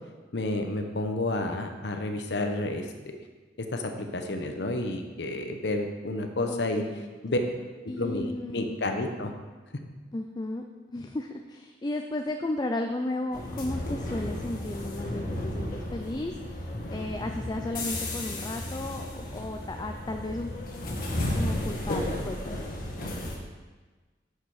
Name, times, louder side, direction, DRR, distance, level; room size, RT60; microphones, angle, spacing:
voice 1, 0.3-2.9 3.6-6.8 7.2-7.4 8.0-9.3, left 2 dB, 75° left, 5 dB, 0.9 m, -30 dB
voice 2, 6.5-7.5 7.9-8.7 10.1-21.0 21.3-22.4, left 2 dB, 25° left, 4 dB, 0.4 m, -34 dB
sound 1, 13.3-23.4, left 1 dB, 55° left, 1.7 m, -33 dB
10.0 x 6.6 x 4.8 m, 1.3 s
head